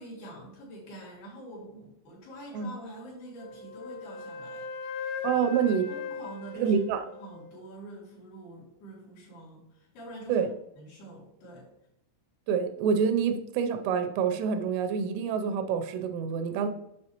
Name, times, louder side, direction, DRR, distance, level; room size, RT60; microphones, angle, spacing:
voice 1, 0.0-5.6 5.9-6.8 7.2-10.5 10.8-11.7, right 1 dB, 60° left, -5 dB, 3.7 m, -46 dB
Wind instrument woodwind instrument, 3.3-7.6, left 5 dB, 80° left, 3.1 m, -39 dB
voice 2, 5.2-5.9 6.6-7.0 10.3-10.5 12.5-16.7, right 7 dB, 85° right, 7 dB, 3.0 m, -27 dB
8.6 x 6.2 x 2.9 m, 0.79 s
omnidirectional pair, 5.7 m